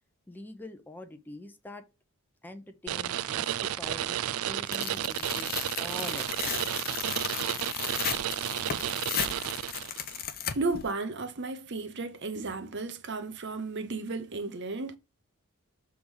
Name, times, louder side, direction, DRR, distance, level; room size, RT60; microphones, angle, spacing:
voice 1, 0.3-1.9 2.4-5.5 5.8-6.7, left 1 dB, 10° left, 0.7 m, -44 dB
sound 1, 2.9-10.1, right 11 dB, 75° right, 0.4 m, -32 dB
Tearing, 4.7-10.8, left 8 dB, 45° left, 0.8 m, -35 dB
voice 2, 10.3-15.0, right 3 dB, 55° right, 0.9 m, -34 dB
6.8 x 3.6 x 6.3 m
head